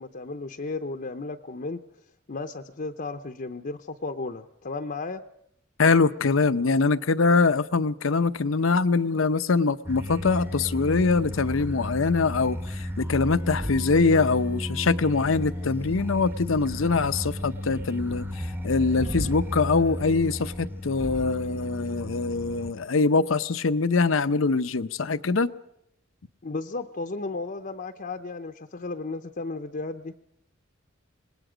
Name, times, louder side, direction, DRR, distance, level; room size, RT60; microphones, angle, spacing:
voice 1, 0.0-1.8 2.3-5.2 26.4-30.1, left 3 dB, 45° left, 0.7 m, -34 dB
voice 2, 5.8-25.5, left 4 dB, 80° left, 0.7 m, -23 dB
sound 1, 9.9-22.7, equal, 10° right, 1.0 m, -33 dB
26.5 x 20.0 x 5.1 m
head